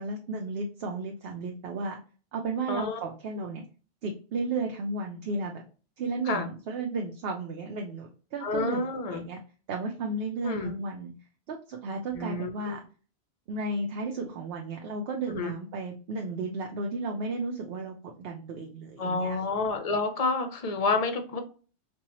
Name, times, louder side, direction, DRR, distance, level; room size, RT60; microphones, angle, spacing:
voice 1, 0.0-2.0 2.3-3.6 4.0-5.6 6.0-8.8 9.1-9.4 9.7-11.1 11.5-12.8 13.5-19.4, right 3 dB, 65° right, 2 dB, 0.8 m, -33 dB
voice 2, 2.7-3.0 3.4-3.5 6.3-6.5 8.4-9.2 10.4-10.7 12.1-12.8 15.3-15.5 19.0-21.4, left 3 dB, 45° left, 7 dB, 0.5 m, -29 dB
4.2 x 2.3 x 2.9 m, 0.38 s
omnidirectional pair, 1.1 m